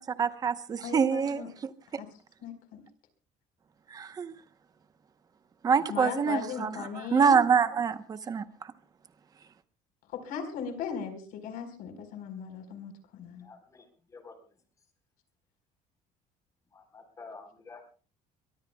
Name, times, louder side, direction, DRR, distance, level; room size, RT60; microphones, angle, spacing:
voice 1, 0.2-1.4 3.9-4.3 5.6-6.7 7.1-8.7, right 6 dB, 25° right, 0.9 m, -25 dB
voice 2, 0.8-1.5 1.9-2.1 2.4-2.8 5.9-7.4 10.1-13.5, left 7 dB, 75° left, 4.4 m, -38 dB
voice 3, 13.4-14.6 16.7-17.9, left 4 dB, 20° left, 4.3 m, -50 dB
23.5 x 23.0 x 2.3 m
cardioid pair, 165°, 15 cm